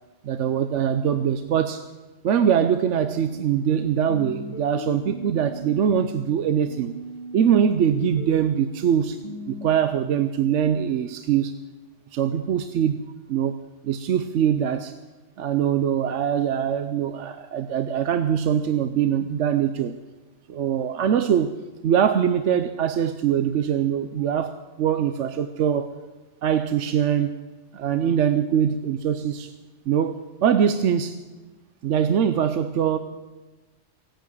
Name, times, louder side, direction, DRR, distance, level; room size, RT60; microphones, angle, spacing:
voice 1, 0.2-1.8 2.2-7.0 7.3-9.2 9.5-11.6 12.1-13.0 13.3-13.5 13.8-14.9 15.4-20.0 20.5-21.5 21.8-25.9 26.4-27.4 27.7-29.5 29.9-31.2 31.8-33.0, right 8 dB, 75° right, 10 dB, 1.0 m, -23 dB
sound 1, 3.2-6.3 6.7-9.7, left 1 dB, 25° left, 1.1 m, -38 dB
17.0 x 9.0 x 9.2 m, 1.2 s
omnidirectional pair, 1.3 m